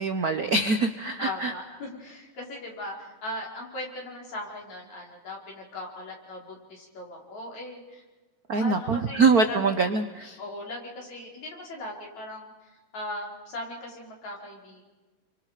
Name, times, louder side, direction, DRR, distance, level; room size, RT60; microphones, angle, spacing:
voice 1, 0.0-1.5 8.5-10.4, right 4 dB, 75° right, 8 dB, 0.8 m, -24 dB
voice 2, 1.2-8.0 8.6-9.6 10.4-14.9, left 1 dB, 70° left, -1 dB, 6.3 m, -39 dB
29.5 x 24.5 x 5.1 m, 1.2 s
omnidirectional pair, 3.3 m